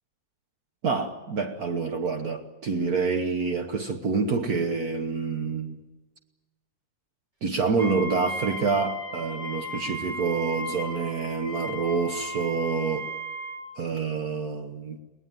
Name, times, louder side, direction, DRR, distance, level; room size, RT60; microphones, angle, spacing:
voice 1, 0.8-5.8 7.4-13.1 13.8-15.0, right 4 dB, 55° right, 1.6 m, -27 dB
Wind instrument woodwind instrument, 7.8-13.7, equal, 25° right, 3.8 m, -35 dB
23.0 x 18.5 x 9.1 m
omnidirectional pair, 2.0 m